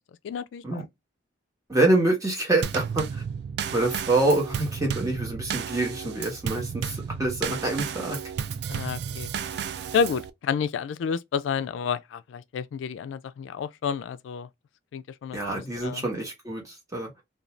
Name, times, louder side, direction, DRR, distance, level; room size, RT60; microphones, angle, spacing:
voice 1, 0.2-0.8 8.7-9.3 9.9-14.5 14.9-16.0, left 6 dB, 85° left, 0.3 m, -30 dB
voice 2, 1.7-3.2 3.6-8.2 15.3-17.2, right 2 dB, 20° right, 1.0 m, -26 dB
Drum kit / Snare drum / Bass drum, 2.6-10.3, right 7 dB, 60° right, 0.3 m, -33 dB
2.5 x 2.3 x 3.0 m
head